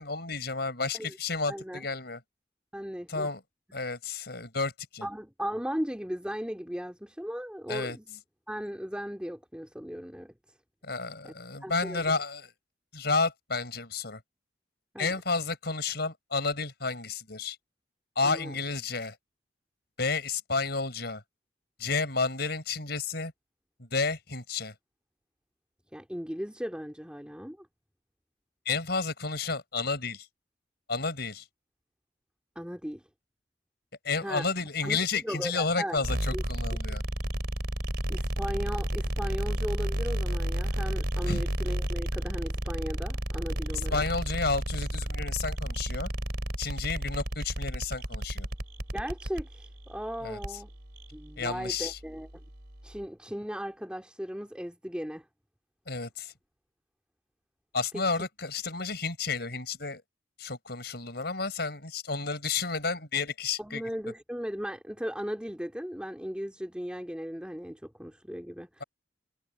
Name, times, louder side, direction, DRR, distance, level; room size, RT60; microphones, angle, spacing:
voice 1, 0.0-2.2 3.1-3.4 3.7-5.1 7.7-8.0 10.8-12.5 12.9-14.2 15.0-17.6 18.2-19.2 20.0-21.2 21.8-23.3 23.8-24.7 28.7-30.3 30.9-31.4 34.0-37.0 41.3-41.4 43.7-46.1 46.6-48.5 50.2-50.4 51.4-52.0 55.9-56.3 57.7-60.0 60.4-63.8, left 4 dB, 60° left, 5.9 m, -31 dB
voice 2, 1.5-1.8 2.7-3.3 3.7-3.8 5.0-8.1 8.5-10.3 11.2-11.3 11.6-12.0 14.9-15.1 18.2-18.5 25.9-27.7 32.5-33.0 34.2-34.5 34.8-36.0 36.3-36.4 38.1-44.0 48.9-50.7 51.1-52.3 52.8-55.2 57.9-58.3 63.6-68.8, equal, 5° right, 3.0 m, -37 dB
sound 1, 36.0-53.0, right 1 dB, 60° right, 3.8 m, -32 dB
head